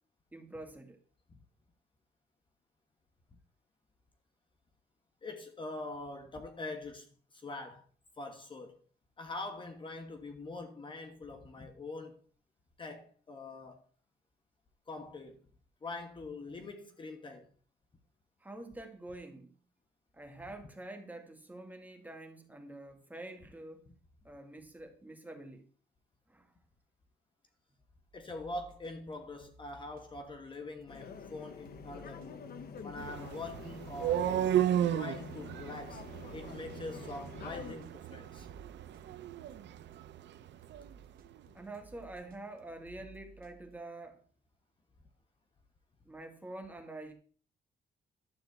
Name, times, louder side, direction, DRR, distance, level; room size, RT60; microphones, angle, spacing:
voice 1, 0.3-1.0 18.4-19.6 20.1-23.8 24.2-25.6 26.3-26.5 41.5-44.2 46.0-47.1, right 2 dB, 10° right, 1.6 m, -47 dB
voice 2, 5.2-7.9 8.2-8.8 9.2-12.2 12.8-13.8 14.9-15.4 15.8-17.5 23.9-24.0 28.1-32.5 32.8-36.0 36.3-38.5, left 2 dB, 30° left, 1.3 m, -44 dB
sound 1, 28.1-40.1 40.6-43.8, right 4 dB, 55° right, 1.4 m, -60 dB
sound 2, 30.9-37.7, left 6 dB, 60° left, 1.1 m, -48 dB
sound 3, 33.0-40.9, right 11 dB, 90° right, 0.8 m, -35 dB
12.5 x 4.2 x 7.9 m
wide cardioid pair, 170°, 18 cm